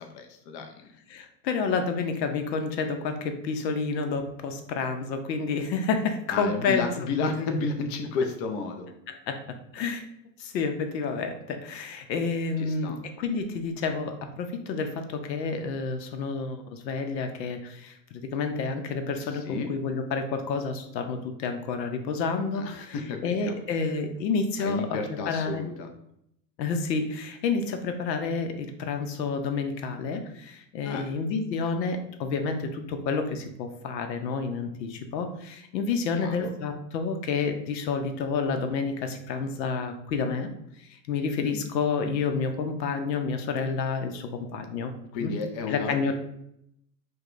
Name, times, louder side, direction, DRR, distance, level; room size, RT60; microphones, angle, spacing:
voice 1, 0.0-0.9 6.3-8.9 12.6-13.0 19.3-19.7 22.5-23.5 23.8-23.9 24.6-25.9 30.8-31.1 36.2-36.5 41.4-41.6 45.1-46.1, left 4 dB, 35° left, 5 dB, 0.4 m, -32 dB
voice 2, 1.1-6.9 7.2-7.5 9.1-9.4 9.7-10.0 10.4-22.9 23.2-25.0 25.3-25.6 26.6-40.5 40.8-44.9 45.2-45.3 45.7-46.1, left 4 dB, 85° left, 7 dB, 0.7 m, -29 dB
4.7 x 2.2 x 2.5 m, 0.75 s
hypercardioid pair, 110°, 50 cm